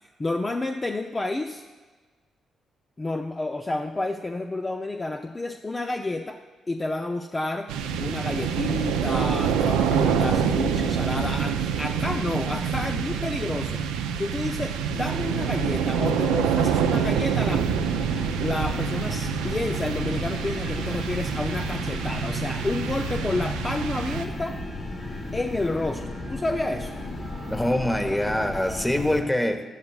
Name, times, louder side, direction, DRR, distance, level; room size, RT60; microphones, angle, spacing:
voice 1, 0.2-1.6 3.0-6.4 6.7-7.7 8.0-13.8 14.2-17.6 18.4-24.6 25.3-26.0 26.3-26.9, left 2 dB, 30° left, 4 dB, 0.6 m, -30 dB
sound 1, 7.7-24.6, right 7 dB, 85° right, 0.5 m, -26 dB
sound 2, 17.4-29.2, left 2 dB, 60° left, 2.8 m, -35 dB
voice 2, 27.5-29.6, left 1 dB, 10° left, 7 dB, 1.1 m, -24 dB
13.0 x 10.5 x 2.4 m, 1.4 s
hypercardioid pair, 45°, 0 cm